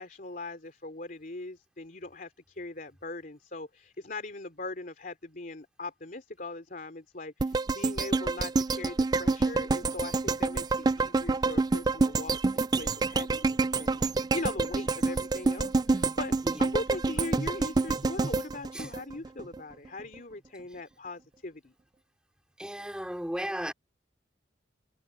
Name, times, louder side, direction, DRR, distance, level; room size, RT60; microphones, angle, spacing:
voice 1, 0.0-21.7, left 2 dB, 50° left, 3.2 m, -40 dB
sound 1, 7.4-19.6 20.0-20.1, right 3 dB, 20° right, 0.3 m, -27 dB
voice 2, 22.6-23.7, equal, 5° right, 4.8 m, -35 dB
head